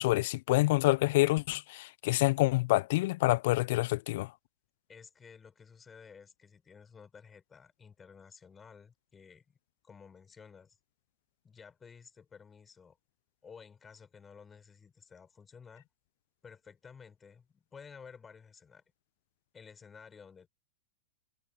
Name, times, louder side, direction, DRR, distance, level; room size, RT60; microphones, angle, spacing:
voice 1, 0.0-4.3, left 20 dB, 55° left, 0.6 m, -27 dB
voice 2, 4.9-9.5 9.8-10.8 11.4-13.0 13.4-15.9 16.4-18.8 19.5-20.5, left 6 dB, 20° left, 5.6 m, -53 dB
hypercardioid pair, 110°, 0 cm